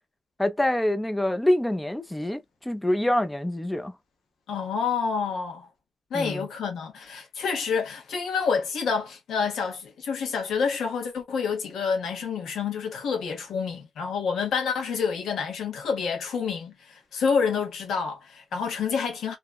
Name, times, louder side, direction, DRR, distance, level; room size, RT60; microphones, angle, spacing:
voice 1, 0.4-3.9 6.1-6.5, left 1 dB, 10° left, 0.5 m, -26 dB
voice 2, 4.5-5.7 6.1-19.4, left 6 dB, 80° left, 1.1 m, -28 dB
2.9 x 2.2 x 2.3 m
cardioid pair, 105°, 0 cm